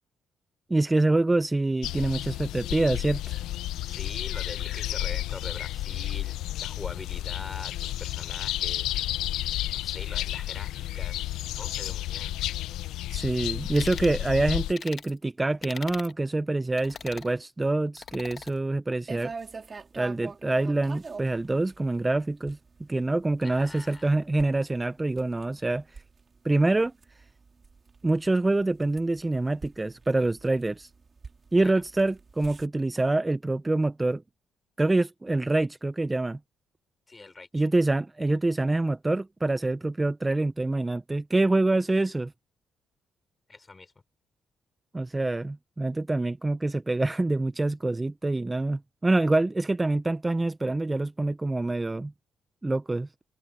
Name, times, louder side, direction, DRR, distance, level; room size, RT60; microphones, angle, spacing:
voice 1, 0.7-3.4 13.1-19.3 20.0-22.6 22.9-26.0 26.4-26.9 28.0-30.9 31.5-34.2 34.8-36.4 37.5-42.3 44.9-52.1 52.6-53.1, right 2 dB, 15° right, 0.7 m, -26 dB
sound 1, 1.8-14.7, left 14 dB, 90° left, 0.7 m, -32 dB
voice 2, 3.9-6.3 6.6-9.0 9.7-12.4 23.4-24.2 31.6-31.7 37.1-37.7 43.5-43.9, left 3 dB, 25° left, 4.2 m, -43 dB
sound 2, 13.7-14.2 14.8-15.1 15.6-16.1 16.8-17.3 18.0-18.5, left 6 dB, 50° left, 1.8 m, -41 dB
sound 3, 19.1-32.7, right 4 dB, 35° right, 4.2 m, -46 dB
cardioid pair, 90°, 0 cm